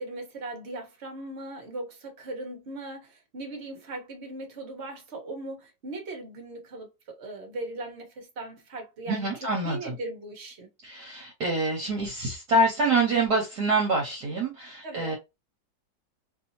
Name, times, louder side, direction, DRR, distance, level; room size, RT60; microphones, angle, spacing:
voice 1, 0.0-10.7 14.8-15.2, right 2 dB, 40° right, 1.1 m, -39 dB
voice 2, 9.1-9.9 10.8-15.2, right 2 dB, 60° right, 1.4 m, -26 dB
3.1 x 2.8 x 2.7 m
omnidirectional pair, 2.1 m